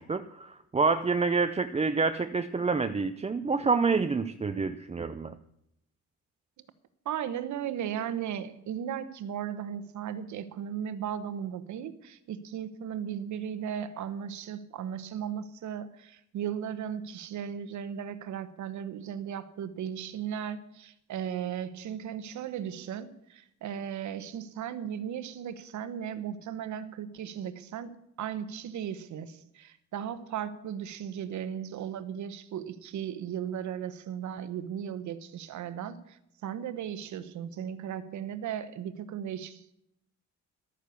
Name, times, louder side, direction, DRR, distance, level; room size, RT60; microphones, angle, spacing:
voice 1, 0.0-5.3, right 4 dB, 20° right, 0.6 m, -27 dB
voice 2, 7.0-39.7, right 9 dB, 70° right, 1.2 m, -36 dB
12.5 x 9.4 x 7.1 m
cardioid pair, 90°, 30 cm